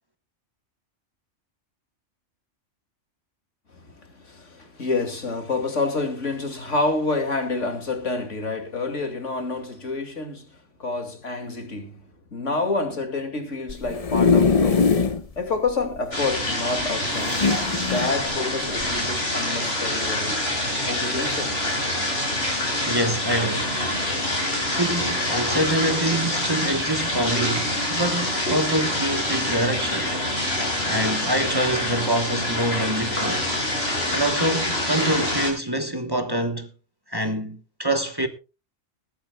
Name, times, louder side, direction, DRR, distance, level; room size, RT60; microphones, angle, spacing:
voice 1, 3.7-12.0 12.3-15.0 15.4-17.3 17.7-20.4 20.9-21.5, left 3 dB, 80° left, 2.7 m, -28 dB
sound 1, 13.7-15.2 15.7-15.8 16.0-16.1 17.2-18.1 18.8-19.0, left 5 dB, 35° left, 0.8 m, -21 dB
sound 2, 16.1-35.5, left 1 dB, 55° left, 6.3 m, -26 dB
voice 2, 22.9-23.7 24.7-30.2 30.9-33.4 34.1-36.7 37.1-38.3, right 1 dB, 20° right, 1.2 m, -25 dB
19.5 x 14.5 x 2.3 m
omnidirectional pair, 1.2 m